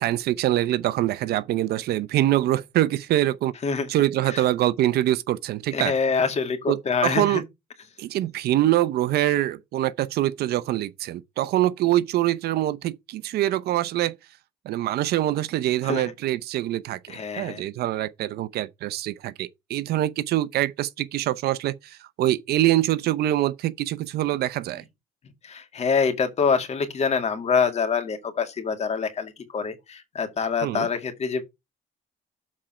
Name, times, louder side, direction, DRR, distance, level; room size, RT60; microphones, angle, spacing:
voice 1, 0.0-3.5 3.9-5.9 6.7-6.8 7.0-7.4 8.0-14.1 14.7-24.8 30.6-30.9, right 14 dB, 70° right, 0.7 m, -24 dB
voice 2, 5.7-7.4 15.8-16.1 17.1-17.6 25.4-31.4, left 5 dB, 40° left, 2.2 m, -25 dB
7.4 x 4.4 x 5.7 m
cardioid pair, 110°, 17 cm